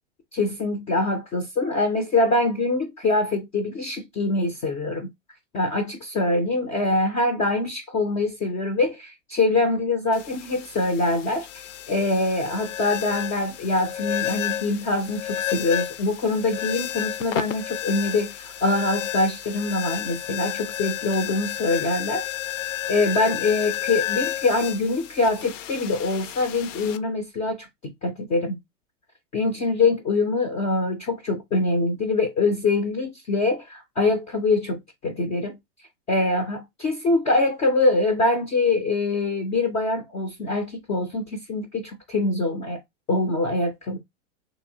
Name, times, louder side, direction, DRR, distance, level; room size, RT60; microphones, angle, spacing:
voice 1, 0.3-5.1 5.5-22.3 22.9-27.7 28.0-28.6 29.3-35.6 36.1-42.8 43.1-44.0, left 2 dB, 20° left, 0.3 m, -24 dB
sound 1, 10.1-27.0, left 11 dB, 75° left, 0.5 m, -32 dB
2.7 x 2.7 x 2.6 m
hypercardioid pair, 120°, 37 cm